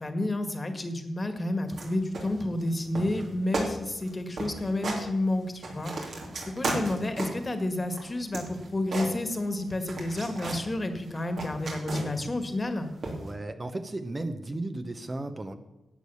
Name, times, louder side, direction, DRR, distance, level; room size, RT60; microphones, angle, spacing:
voice 1, 0.0-6.2 6.6-12.9, left 1 dB, 30° left, 7 dB, 1.8 m, -30 dB
sound 1, 1.7-1.9 2.1-2.7 3.0-3.3 3.5-3.7 4.0-4.1 4.4-5.0 5.4-7.5 7.9-9.6 9.9-10.7 11.1-12.3 13.0-13.3, right 2 dB, 70° right, 3.2 m, -34 dB
voice 2, 13.2-15.5, right 2 dB, 30° right, 7 dB, 1.1 m, -35 dB
11.5 x 8.1 x 7.1 m, 0.96 s
cardioid pair, 60°, 0 cm